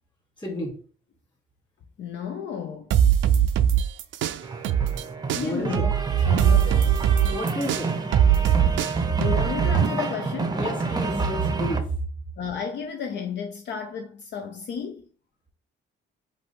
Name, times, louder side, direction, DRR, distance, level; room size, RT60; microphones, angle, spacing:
voice 1, 0.4-0.7 5.4-5.8 7.2-8.2 10.5-11.9, right 1 dB, 20° left, 2.4 m, -30 dB
voice 2, 2.0-2.9 5.3-5.9 6.3-7.1 9.2-10.6 12.4-15.1, left 6 dB, 60° left, 0.6 m, -32 dB
sound 1, 2.9-5.0 5.3-9.9, right 9 dB, 75° right, 0.4 m, -21 dB
sound 2, 4.4-11.8, right 3 dB, 20° right, 0.6 m, -30 dB
5.2 x 2.6 x 3.6 m
cardioid pair, 90°, 20 cm